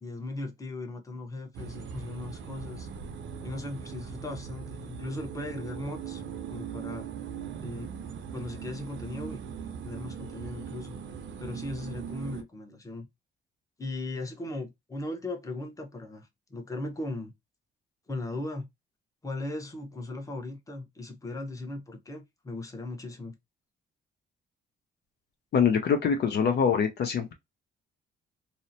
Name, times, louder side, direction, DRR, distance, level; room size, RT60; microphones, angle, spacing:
voice 1, 0.0-2.9 3.4-6.2 6.5-7.1 7.6-7.9 8.3-9.4 9.8-11.0 11.4-13.1 13.8-17.3 18.1-18.7 19.2-23.3, left 2 dB, 15° left, 0.8 m, -38 dB
sound 1, 1.5-12.4, right 7 dB, 70° right, 0.6 m, -40 dB
voice 2, 25.5-27.3, left 7 dB, 55° left, 0.5 m, -24 dB
2.7 x 2.1 x 2.6 m
cardioid pair, 90°, 20 cm